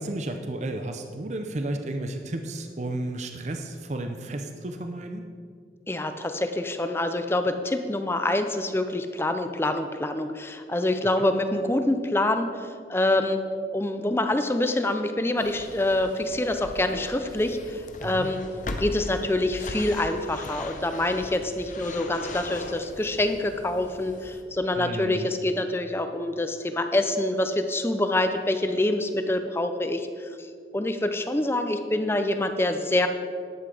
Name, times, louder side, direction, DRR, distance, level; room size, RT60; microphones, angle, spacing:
voice 1, 0.0-5.2 11.2-11.3 18.0-18.3 24.8-25.3, right 1 dB, 40° right, 5 dB, 0.6 m, -33 dB
voice 2, 5.9-13.4 13.7-18.4 18.8-30.5 30.7-33.1, left 1 dB, 15° left, 8 dB, 0.5 m, -26 dB
sound 1, 15.4-24.4, left 2 dB, 45° left, 0.8 m, -39 dB
11.0 x 8.0 x 4.9 m, 2.2 s
head